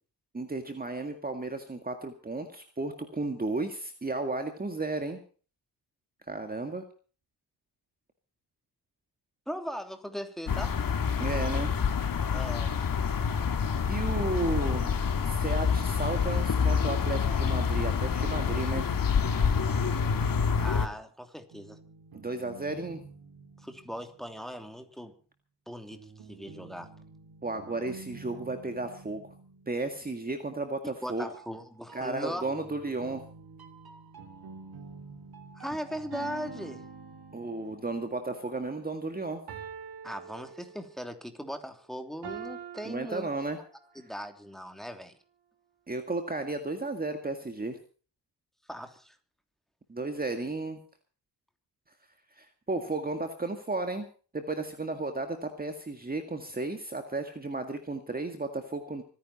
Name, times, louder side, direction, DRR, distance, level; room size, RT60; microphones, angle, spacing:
voice 1, 0.3-5.2 6.3-6.8 11.2-11.7 13.9-14.9 15.3-18.9 22.1-23.0 27.4-29.3 29.7-31.3 31.9-33.2 37.3-39.4 42.8-43.6 45.9-47.8 49.9-50.8 52.4-54.1 54.3-59.0, right 2 dB, 20° right, 6 dB, 2.0 m, -33 dB
voice 2, 9.5-10.8 12.3-12.7 20.6-21.8 23.6-25.1 25.7-26.0 26.3-26.9 31.0-32.4 35.5-36.8 40.0-43.3 43.9-45.1 48.7-49.2, equal, ahead, 6 dB, 3.0 m, -39 dB
sound 1, 10.5-20.9, left 6 dB, 55° left, 2.2 m, -27 dB
sound 2, 21.5-24.6 25.9-30.5 31.3-39.0, right 4 dB, 65° right, 2.8 m, -50 dB
sound 3, 36.1-38.0 39.5-41.1 42.2-43.9, right 6 dB, 80° right, 3.9 m, -44 dB
25.5 x 10.0 x 4.3 m, 0.40 s
cardioid pair, 100°, 40 cm